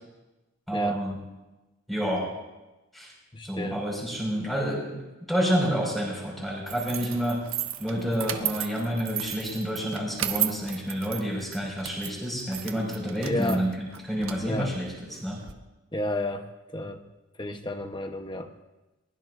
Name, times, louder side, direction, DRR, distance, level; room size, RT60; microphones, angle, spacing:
voice 1, 0.7-1.2 1.9-2.2 2.9-3.1 3.4-5.0 5.3-7.4 7.8-13.7 14.0-15.4, equal, ahead, -3 dB, 5.7 m, -29 dB
voice 2, 3.3-3.8 13.2-13.7 14.4-14.7 15.9-16.5 16.7-17.0 17.4-18.5, left 1 dB, 20° left, 6 dB, 1.1 m, -31 dB
sound 1, 6.7-15.5, right 11 dB, 70° right, 1.0 m, -35 dB
22.5 x 20.5 x 2.7 m, 1.1 s
head